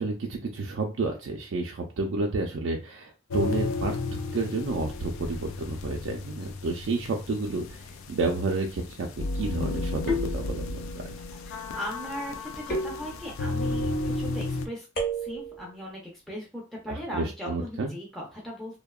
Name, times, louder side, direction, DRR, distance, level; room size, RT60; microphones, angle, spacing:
voice 1, 0.0-10.9 16.9-17.9, right 3 dB, 70° right, 1 dB, 0.4 m, -30 dB
sound 1, 3.3-14.7, left 3 dB, 85° left, 0.3 m, -33 dB
sound 2, 7.7-8.2 10.1-11.0 12.7-13.6 15.0-15.7, equal, 50° left, 0.8 m, -33 dB
voice 2, 11.4-14.9 15.2-18.8, equal, ahead, -3 dB, 0.4 m, -38 dB
2.7 x 2.1 x 2.2 m, 0.31 s
head